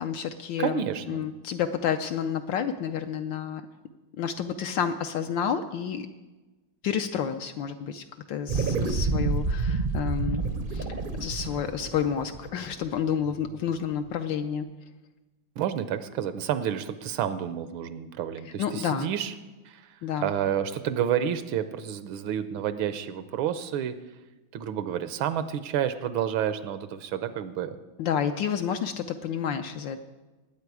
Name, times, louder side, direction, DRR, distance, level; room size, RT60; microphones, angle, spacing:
voice 1, 0.0-0.8 1.1-3.6 4.2-6.1 6.8-10.4 10.7-10.9 11.2-14.7 18.6-19.1 20.0-20.3 28.0-30.0, left 8 dB, 75° left, 7 dB, 1.2 m, -30 dB
voice 2, 0.6-1.2 15.6-19.3 19.7-19.8 20.2-23.9 24.5-27.8, right 9 dB, 75° right, 12 dB, 1.4 m, -29 dB
sound 1, 8.5-13.1, right 4 dB, 50° right, 0.6 m, -29 dB
19.0 x 8.6 x 4.8 m, 1.2 s
omnidirectional pair, 2.3 m